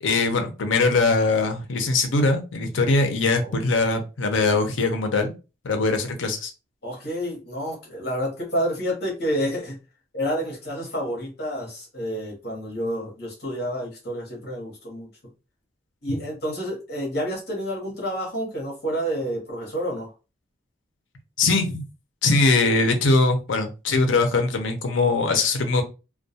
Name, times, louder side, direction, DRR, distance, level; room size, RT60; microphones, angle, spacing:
voice 1, 0.0-5.3 5.6-6.5 16.1-16.2 21.4-21.9 22.2-25.8, left 3 dB, 85° left, 6 dB, 0.6 m, -21 dB
voice 2, 6.8-9.8 10.1-15.1 16.0-20.1, equal, 55° left, -3 dB, 0.9 m, -29 dB
2.2 x 2.2 x 2.7 m, 0.30 s
head